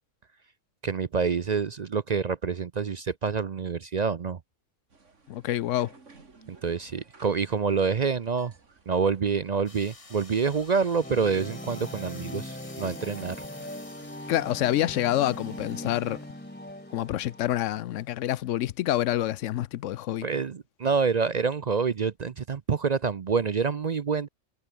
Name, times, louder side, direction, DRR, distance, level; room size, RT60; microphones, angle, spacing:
voice 1, 0.8-4.4 6.5-8.5 8.9-13.5 20.2-24.3, right 5 dB, 45° right, 0.6 m, -27 dB
sound 1, 4.9-16.3, right 4 dB, 75° right, 2.9 m, -58 dB
voice 2, 5.3-5.9 14.3-16.2 16.9-20.2, left 13 dB, 85° left, 1.0 m, -27 dB
sound 2, 9.7-18.3, left 3 dB, 30° left, 1.5 m, -52 dB
sound 3, 11.0-17.9, left 1 dB, 10° left, 2.0 m, -40 dB
omnidirectional pair, 1.3 m